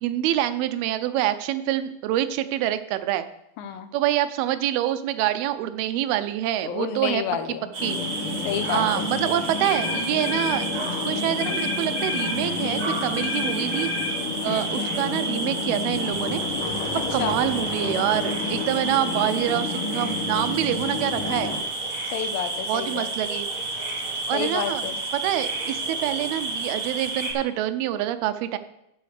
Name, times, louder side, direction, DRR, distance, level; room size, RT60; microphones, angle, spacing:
voice 1, 0.0-3.3 3.9-7.2 7.8-8.0 8.7-10.7 11.0-13.9 14.4-16.4 17.1-21.5 22.7-23.5 24.3-24.9 25.1-28.6, right 12 dB, 90° right, 11 dB, 2.6 m, -26 dB
voice 2, 3.6-3.9 6.6-7.7 8.4-9.1 14.5-14.7 16.9-17.4 22.1-23.1 24.3-25.0, left 8 dB, 80° left, 9 dB, 2.5 m, -30 dB
sound 1, 7.7-27.3, right 2 dB, 50° right, 3.0 m, -31 dB
sound 2, 7.8-21.6, left 4 dB, 55° left, 1.5 m, -31 dB
sound 3, 9.6-10.6 11.4-12.4 13.2-14.1, left 4 dB, 35° left, 2.2 m, -31 dB
8.3 x 7.7 x 6.5 m, 0.85 s
omnidirectional pair, 4.3 m